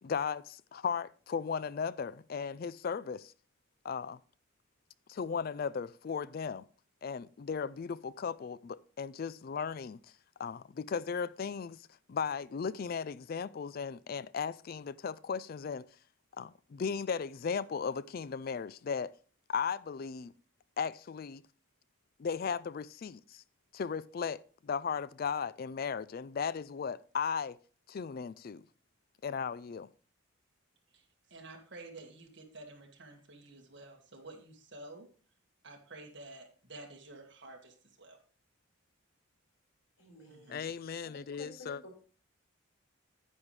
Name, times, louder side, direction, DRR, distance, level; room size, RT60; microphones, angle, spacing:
voice 1, 0.0-3.3 3.8-4.2 5.1-6.6 7.0-10.0 10.4-11.8 12.1-15.9 16.4-19.1 19.5-20.3 20.8-21.4 22.2-23.4 23.7-27.6 27.9-28.6 29.2-29.9 40.5-41.8, left 6 dB, 45° left, 0.3 m, -36 dB
voice 2, 31.3-35.1 35.6-38.2 40.3-40.7, right 2 dB, 55° right, 1.9 m, -50 dB
voice 3, 40.0-40.6 41.0-42.0, left 1 dB, 75° left, 5.4 m, -52 dB
9.7 x 9.0 x 3.2 m
head